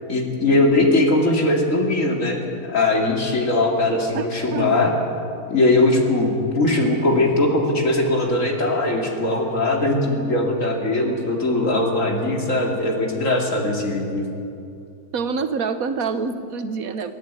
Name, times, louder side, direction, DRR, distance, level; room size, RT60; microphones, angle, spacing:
voice 1, 0.1-4.9 5.5-14.2, left 2 dB, 60° left, 1 dB, 3.0 m, -20 dB
voice 2, 4.1-4.8 15.1-17.1, right 5 dB, 75° right, 10 dB, 1.5 m, -26 dB
28.0 x 11.0 x 9.1 m, 2.6 s
omnidirectional pair, 1.5 m